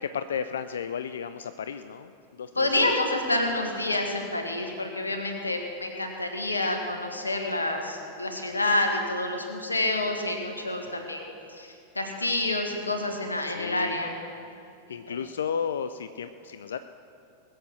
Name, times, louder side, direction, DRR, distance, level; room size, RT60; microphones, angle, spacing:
voice 1, 0.0-2.9 10.9-11.1 13.5-14.0 14.9-16.8, left 7 dB, 65° left, 11 dB, 0.4 m, -33 dB
voice 2, 2.5-14.1 15.1-15.2, left 2 dB, 80° left, 3 dB, 1.7 m, -28 dB
20.0 x 7.7 x 6.3 m, 2.6 s
figure-of-eight pair, 90°, 0 cm